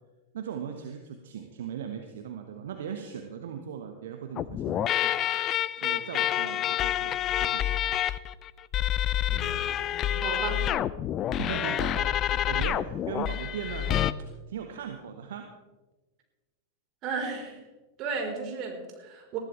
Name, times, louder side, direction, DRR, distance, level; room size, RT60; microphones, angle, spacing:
voice 1, 0.3-5.3 5.8-7.9 11.2-14.0 14.5-15.5, right 8 dB, 60° right, 4 dB, 1.3 m, -38 dB
sound 1, 4.4-14.1, left 11 dB, 30° left, 0.5 m, -28 dB
voice 2, 9.3-10.6 17.0-17.6 18.0-19.4, right 5 dB, 35° right, 1 dB, 4.3 m, -35 dB
20.5 x 14.5 x 3.4 m, 1.1 s
figure-of-eight pair, 90°, 0 cm